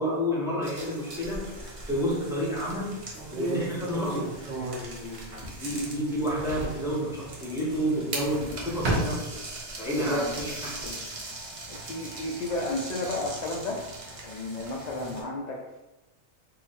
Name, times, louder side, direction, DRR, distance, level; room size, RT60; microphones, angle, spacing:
voice 1, 0.0-1.5 1.9-3.0 3.3-9.4 9.8-11.1 15.0-15.2, equal, 5° right, -6 dB, 0.9 m, -30 dB
sound 1, 0.6-15.2, right 2 dB, 35° right, 0.7 m, -41 dB
sound 2, 1.2-2.2 2.7-2.8 3.1-5.8 6.1-6.9 8.0-9.8 10.2-10.9, right 2 dB, 70° right, 1.1 m, -34 dB
voice 2, 9.8-10.3 11.7-13.8 14.2-15.8, left 2 dB, 55° left, -2 dB, 0.5 m, -32 dB
3.8 x 2.0 x 4.1 m, 0.98 s
omnidirectional pair, 1.2 m